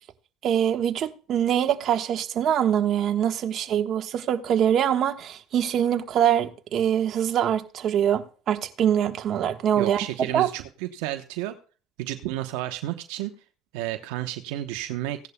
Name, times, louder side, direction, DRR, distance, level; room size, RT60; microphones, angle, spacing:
voice 1, 0.4-10.0 10.3-10.5, right 9 dB, 50° right, 1.2 m, -24 dB
voice 2, 9.8-11.5 12.0-13.3 13.7-15.2, right 14 dB, 80° right, 0.9 m, -31 dB
16.5 x 10.5 x 2.2 m
supercardioid pair, 100°, 0 cm